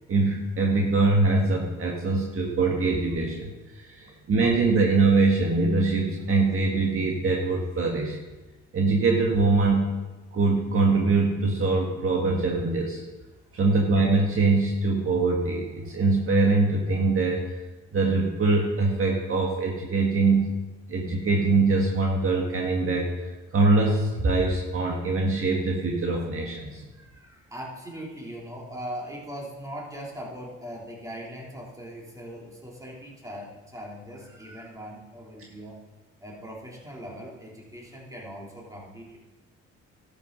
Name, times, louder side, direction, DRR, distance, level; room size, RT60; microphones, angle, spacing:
voice 1, 0.1-8.2 8.7-9.9 10.3-13.0 13.5-17.4 17.9-20.5 20.9-26.8, right 3 dB, 45° right, -1 dB, 1.7 m, -23 dB
voice 2, 26.9-35.8 36.2-39.2, equal, 10° right, -4 dB, 3.6 m, -40 dB
12.5 x 7.1 x 5.4 m, 1.1 s
cardioid pair, 90°, 30 cm